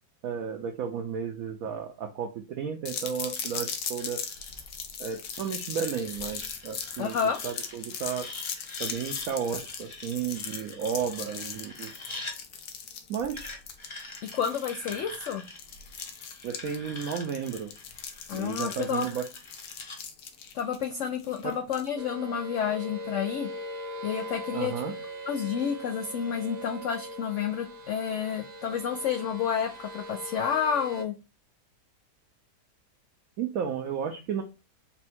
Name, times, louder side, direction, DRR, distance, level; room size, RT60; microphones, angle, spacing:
voice 1, 0.2-4.2 5.0-7.2 7.4-8.3 8.8-11.9 13.1-13.6 16.4-17.7 18.3-19.3 21.4-21.5 24.5-24.9 33.4-34.4, right 7 dB, 70° right, 3 dB, 0.9 m, -33 dB
sound 1, 2.9-21.9, left 7 dB, 70° left, 1.2 m, -39 dB
sound 2, 3.4-12.4 13.4-20.0, left 2 dB, 40° left, 0.4 m, -45 dB
voice 2, 7.0-7.4 14.3-15.4 18.3-19.1 20.5-23.5 24.0-24.7 25.3-31.1, left 7 dB, 90° left, 4 dB, 0.6 m, -30 dB
sound 3, 22.0-31.0, equal, 45° right, 0.5 m, -40 dB
4.3 x 2.3 x 4.2 m, 0.28 s
omnidirectional pair, 1.9 m